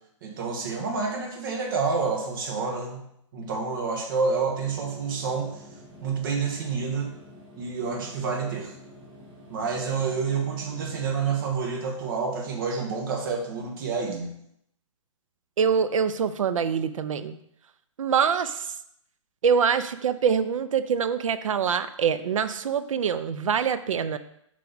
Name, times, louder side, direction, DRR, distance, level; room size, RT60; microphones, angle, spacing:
voice 1, 0.2-3.0 3.3-5.6 6.0-7.1 7.6-8.7 9.5-14.3, right 5 dB, 40° right, 1 dB, 1.2 m, -28 dB
sound 1, 4.6-11.5, equal, 20° right, 1.7 m, -48 dB
voice 2, 15.6-17.4 18.0-18.7 19.4-24.2, right 7 dB, 80° right, 12 dB, 0.5 m, -24 dB
5.7 x 4.8 x 4.0 m, 0.75 s
hypercardioid pair, 155°, 17 cm